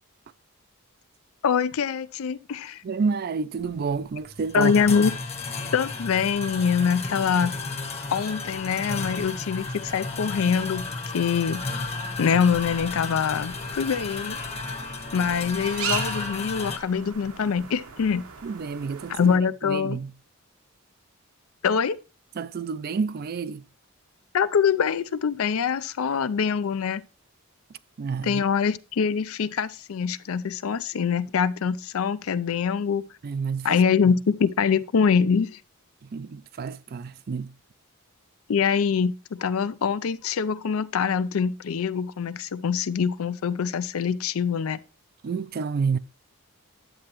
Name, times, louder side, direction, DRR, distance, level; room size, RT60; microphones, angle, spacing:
voice 1, 1.4-2.8 4.5-5.1 5.7-7.5 8.1-10.9 11.1-11.6 12.2-14.4 15.1-18.3 19.1-20.0 21.6-22.0 24.3-27.0 28.2-33.0 33.6-35.6 38.5-44.8, left 6 dB, 75° left, 0.4 m, -24 dB
voice 2, 2.8-4.7 18.4-19.3 19.6-20.1 22.4-23.7 28.0-28.4 33.2-33.8 36.0-37.5 45.2-46.0, right 5 dB, 45° right, 0.4 m, -29 dB
sound 1, 3.6-16.8, left 3 dB, 30° left, 0.9 m, -33 dB
sound 2, 12.5-19.4, right 6 dB, 80° right, 1.0 m, -38 dB
10.5 x 7.6 x 3.0 m
head